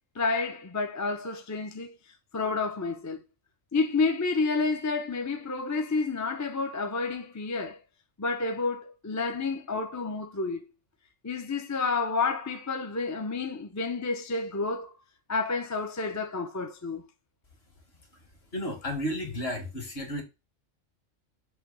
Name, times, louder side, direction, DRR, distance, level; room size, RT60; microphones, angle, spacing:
voice 1, 0.2-1.9 2.3-3.2 3.7-7.8 8.2-10.6 11.2-14.9 15.3-17.0, left 4 dB, 20° left, 0.6 m, -30 dB
voice 2, 18.5-20.2, equal, 55° left, 2.2 m, -32 dB
6.5 x 2.9 x 5.5 m
omnidirectional pair, 1.3 m